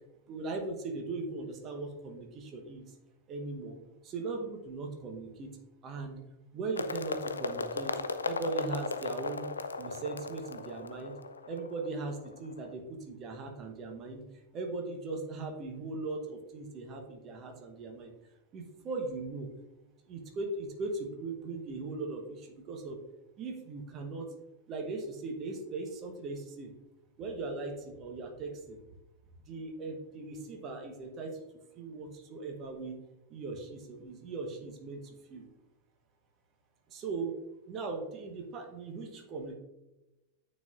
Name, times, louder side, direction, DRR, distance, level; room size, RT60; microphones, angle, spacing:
voice 1, 0.3-3.0 3.3-3.8 4.0-5.5 5.8-6.2 6.5-7.9 8.2-9.5 9.8-11.1 11.5-14.2 14.5-18.1 18.5-19.5 20.1-23.0 23.4-24.3 24.7-26.7 27.2-28.8 29.5-31.4 31.8-33.0 33.3-35.5 36.9-37.3 37.7-39.6, right 3 dB, 30° right, 3 dB, 1.0 m, -39 dB
sound 1, 6.7-12.7, left 3 dB, 75° left, 0.3 m, -37 dB
9.2 x 4.2 x 2.5 m, 0.99 s
figure-of-eight pair, 90°, 0 cm